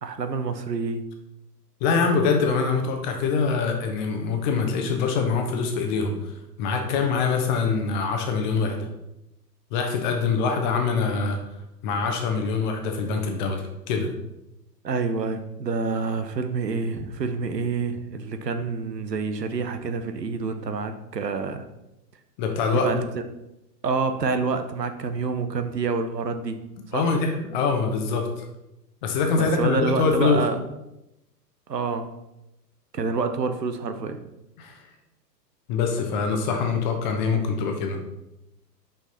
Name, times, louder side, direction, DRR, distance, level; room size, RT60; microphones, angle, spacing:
voice 1, 0.0-1.0 14.8-21.7 22.7-23.2 23.8-26.6 26.9-27.1 29.4-30.6 31.7-32.1 32.9-34.2, right 4 dB, 75° right, 8 dB, 0.8 m, -27 dB
voice 2, 1.8-6.2 6.6-8.9 9.7-11.4 11.8-14.1 22.4-22.9 26.9-28.4 29.0-30.4 34.6-34.8 35.7-38.0, left 5 dB, 30° left, 4 dB, 0.9 m, -24 dB
5.8 x 5.6 x 4.2 m, 0.90 s
figure-of-eight pair, 110°, 49 cm